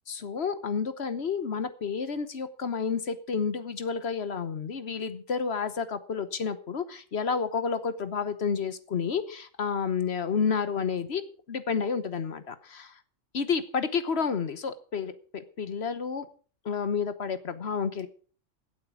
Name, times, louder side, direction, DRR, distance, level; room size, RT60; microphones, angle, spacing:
voice 1, 0.1-11.2 11.5-12.9 13.3-16.3 16.6-18.1, left 6 dB, 55° left, 12 dB, 1.3 m, -30 dB
16.0 x 8.5 x 6.1 m, 0.41 s
omnidirectional pair, 1.3 m